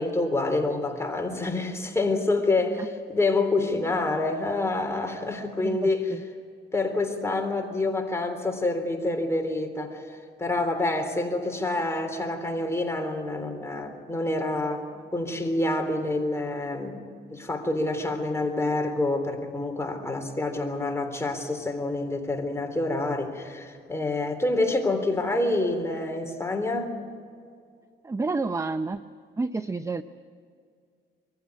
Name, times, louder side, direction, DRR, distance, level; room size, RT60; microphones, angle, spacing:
voice 1, 0.0-6.1 6.7-17.0 17.3-27.0, left 2 dB, 15° left, 4 dB, 3.6 m, -27 dB
voice 2, 5.6-6.2 28.0-29.0 29.4-30.0, right 3 dB, 15° right, 12 dB, 0.6 m, -29 dB
23.5 x 15.5 x 9.5 m, 2.1 s
cardioid pair, 90°, 20 cm